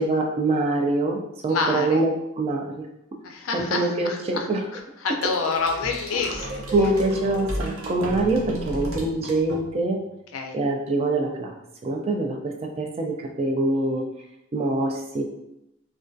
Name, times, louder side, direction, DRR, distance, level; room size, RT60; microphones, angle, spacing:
voice 1, 0.0-2.6 3.5-4.7 5.1-5.2 6.2-6.4 6.7-10.0 10.5-11.5 11.8-14.1 14.5-15.2, right 2 dB, 30° right, 2 dB, 0.3 m, -24 dB
voice 2, 1.5-2.0 3.2-4.5 4.7-6.6 10.3-10.6, left 4 dB, 80° left, 4 dB, 0.4 m, -28 dB
sound 1, 5.2-10.0, right 1 dB, 85° right, 0.6 m, -34 dB
2.3 x 2.2 x 2.5 m, 0.83 s
head